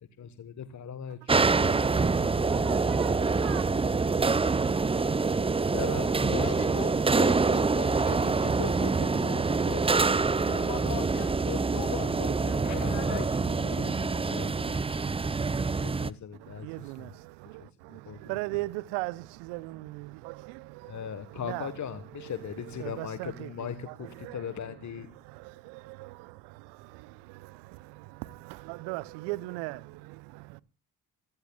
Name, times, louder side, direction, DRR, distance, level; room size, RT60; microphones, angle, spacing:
voice 1, 0.2-1.5 3.0-3.9 5.7-6.2 10.4-10.9 12.6-15.0 15.8-17.2 17.6-18.4 20.9-25.1, left 8 dB, 40° left, 1.4 m, -40 dB
sound 1, 1.3-16.1, right 4 dB, 15° right, 0.6 m, -26 dB
voice 2, 1.3-3.7 16.4-21.7 22.2-24.4 25.2-30.6, right 21 dB, 70° right, 0.7 m, -40 dB
voice 3, 6.2-14.5, left 12 dB, 60° left, 1.5 m, -39 dB
28.0 x 15.0 x 2.4 m
figure-of-eight pair, 45°, 44 cm